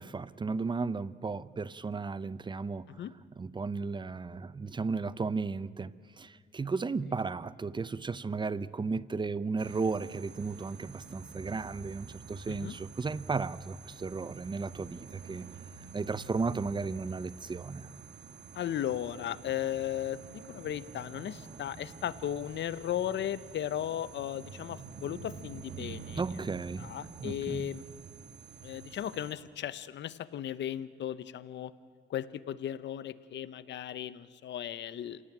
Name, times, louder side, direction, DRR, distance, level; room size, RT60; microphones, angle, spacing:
voice 1, 0.0-3.0 3.3-15.5 15.9-17.9 26.2-26.9 27.2-27.7, right 4 dB, 25° right, 0.7 m, -35 dB
sound 1, 9.6-29.3, right 5 dB, 60° right, 1.9 m, -48 dB
voice 2, 18.5-26.2 26.8-27.8 28.6-31.7 32.1-35.2, left 11 dB, 65° left, 0.9 m, -36 dB
27.5 x 17.5 x 8.9 m
cardioid pair, 90°, 20 cm